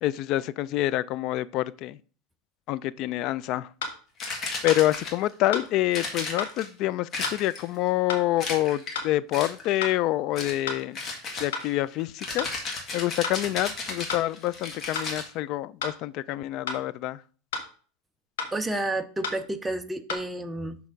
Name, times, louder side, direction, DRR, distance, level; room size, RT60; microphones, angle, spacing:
voice 1, 0.0-2.0 2.7-3.7 4.6-11.0 11.4-12.5 12.9-17.2, left 15 dB, 50° left, 0.3 m, -27 dB
sound 1, 3.8-4.0 4.7-4.8 5.5-5.7 6.4-6.6 7.2-7.4 8.1-8.3 8.9-9.1 9.8-10.0 10.7-10.8 11.5-11.7 12.4-12.6 13.2-13.4 14.1-14.3 15.0-15.1 15.8-16.0 16.7-16.8 17.5-17.7 18.4-18.5 19.2-19.4 20.1-20.2, left 4 dB, 90° left, 1.5 m, -32 dB
sound 2, 4.2-5.3 5.9-6.7 7.1-7.8 8.4-9.0 9.3-9.8 10.4-10.6 10.9-15.3, left 3 dB, 30° left, 1.7 m, -34 dB
voice 2, 18.5-20.8, right 2 dB, 10° right, 0.6 m, -30 dB
6.5 x 3.4 x 5.1 m
supercardioid pair, 135°, 0 cm